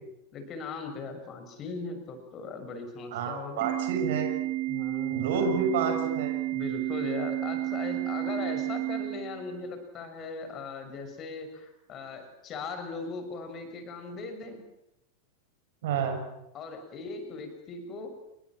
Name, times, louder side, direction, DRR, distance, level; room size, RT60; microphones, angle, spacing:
voice 1, 0.3-3.7 4.7-5.5 5.8-5.9 6.5-14.6 16.5-18.1, left 4 dB, 30° left, 7 dB, 6.4 m, -39 dB
voice 2, 3.1-4.3 5.1-6.4 15.8-16.2, right 5 dB, 55° right, 6 dB, 6.7 m, -29 dB
Organ, 3.6-9.6, right 16 dB, 40° right, 7.4 m, -31 dB
29.0 x 22.0 x 7.6 m, 0.87 s
figure-of-eight pair, 90°, 0 cm